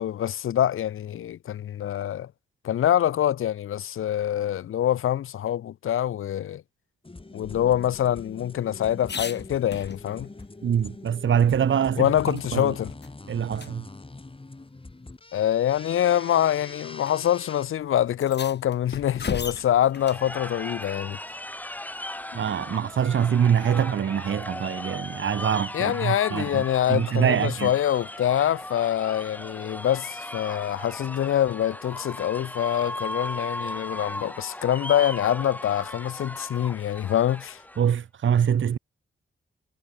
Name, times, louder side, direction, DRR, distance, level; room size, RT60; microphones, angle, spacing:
voice 1, 0.0-2.3 2.6-6.6 7.3-10.3 12.0-12.9 15.3-21.2 25.7-37.6, left 11 dB, 75° left, 0.6 m, -25 dB
sound 1, 7.0-17.7, left 2 dB, 25° left, 3.4 m, -43 dB
sound 2, 7.4-10.4 10.8-10.9 11.2-12.7 13.0-13.2 13.5-13.7 14.8-14.9 15.7-16.0 17.0-17.2 17.4-17.5 18.1-20.3 22.6-23.0, left 5 dB, 55° left, 4.1 m, -38 dB
voice 2, 10.6-12.7 13.3-13.9 22.3-26.6 26.9-27.7 37.8-38.8, right 8 dB, 65° right, 1.0 m, -24 dB
sound 3, 19.9-37.9, left 1 dB, 10° left, 1.2 m, -37 dB
cardioid pair, 60°, 21 cm